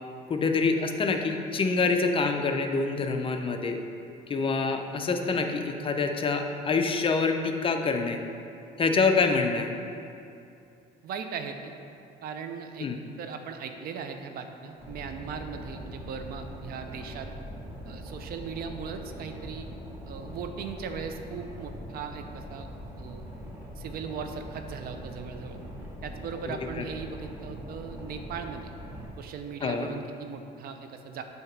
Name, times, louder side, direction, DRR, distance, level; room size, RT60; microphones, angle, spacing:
voice 1, 0.3-3.8 4.3-8.2 8.8-9.7 12.8-13.0 26.5-26.9 29.6-29.9, left 4 dB, 30° left, 5 dB, 0.5 m, -26 dB
voice 2, 11.0-11.7 12.2-12.9 13.2-17.3 17.8-19.7 20.1-22.7 23.0-23.3 23.8-25.6 26.0-28.7 29.2-31.2, right 6 dB, 65° right, 6 dB, 0.6 m, -38 dB
Boat Water vehicle, 14.8-29.0, equal, 15° right, 1.3 m, -42 dB
7.9 x 2.9 x 5.9 m, 2.6 s
cardioid pair, 110°, 17 cm